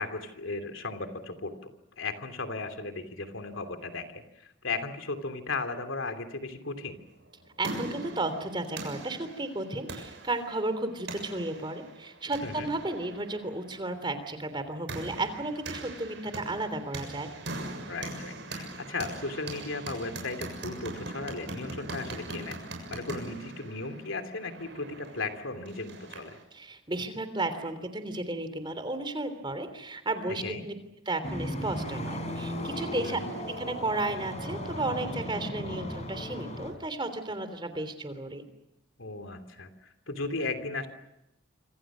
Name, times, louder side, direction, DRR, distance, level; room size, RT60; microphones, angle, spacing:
voice 1, 0.0-7.0 12.4-12.7 17.9-22.6 22.9-26.4 30.4-30.6 32.9-33.3 39.0-40.9, left 3 dB, 85° left, 7 dB, 3.0 m, -36 dB
sound 1, 7.2-26.4, right 2 dB, 60° right, 7.1 m, -41 dB
voice 2, 7.6-17.3 26.5-30.7 31.0-33.2 33.6-38.4, right 2 dB, 25° right, 10 dB, 3.3 m, -33 dB
sound 2, 31.2-36.7, left 1 dB, 35° left, 4.8 m, -36 dB
27.0 x 26.0 x 6.3 m, 0.88 s
head